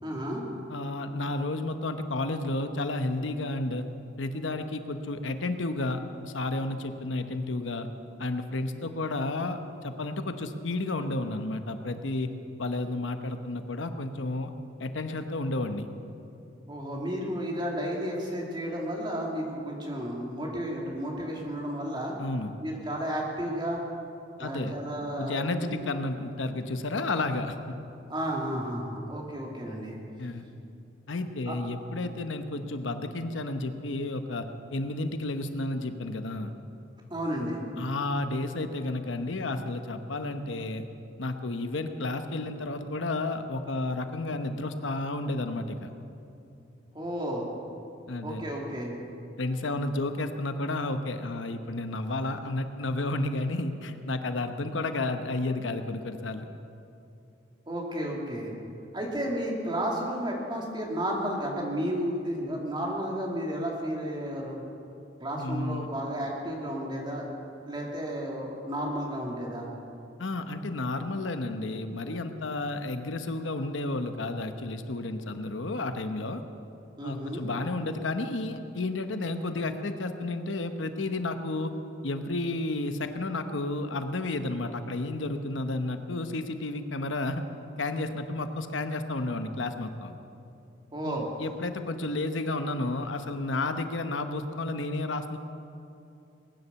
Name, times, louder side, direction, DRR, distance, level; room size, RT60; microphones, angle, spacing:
voice 1, 0.0-0.4 16.7-22.1 22.6-23.8 24.4-25.9 28.1-30.0 31.5-31.6 37.1-37.6 46.9-47.5 48.2-49.0 57.7-58.5 58.9-64.6 65.2-67.3 67.7-69.7 77.0-77.5 90.9-91.3, equal, 25° right, -2 dB, 2.6 m, -32 dB
voice 2, 0.7-3.8 4.2-7.9 8.2-12.3 12.6-14.5 14.8-15.9 22.2-22.6 24.4-24.7 25.2-27.6 30.2-30.5 31.1-36.5 37.8-40.9 41.2-45.9 48.1-48.4 49.4-56.5 65.4-65.9 70.2-76.4 77.0-81.8 82.0-87.4 87.8-90.1 91.0-95.4, left 2 dB, 80° left, 8 dB, 1.0 m, -32 dB
20.5 x 10.0 x 7.0 m, 2.7 s
head